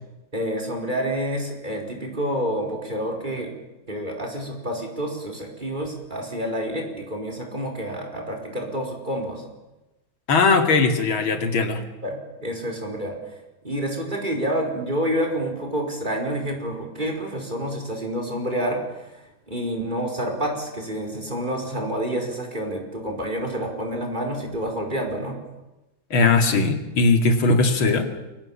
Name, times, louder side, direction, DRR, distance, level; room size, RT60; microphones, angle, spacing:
voice 1, 0.3-3.5 3.9-9.4 12.0-13.3 13.6-25.4, equal, 20° right, 2 dB, 5.0 m, -28 dB
voice 2, 10.3-11.8 26.1-28.1, left 3 dB, 85° left, 6 dB, 3.2 m, -19 dB
29.5 x 23.0 x 7.3 m, 1.0 s
omnidirectional pair, 2.2 m